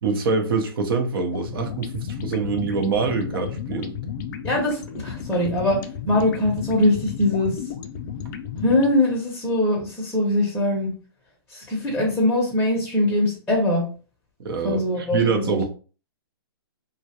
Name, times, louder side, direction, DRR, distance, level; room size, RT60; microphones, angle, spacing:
voice 1, 0.0-3.9 14.4-15.6, right 4 dB, 65° right, 0.7 m, -25 dB
sound 1, 1.3-9.0, left 7 dB, 50° left, 0.4 m, -33 dB
voice 2, 4.4-5.8 6.1-7.6 8.6-10.9 11.5-13.8 14.6-15.6, left 1 dB, 5° left, 0.6 m, -22 dB
2.3 x 2.1 x 2.8 m
hypercardioid pair, 145°, 13 cm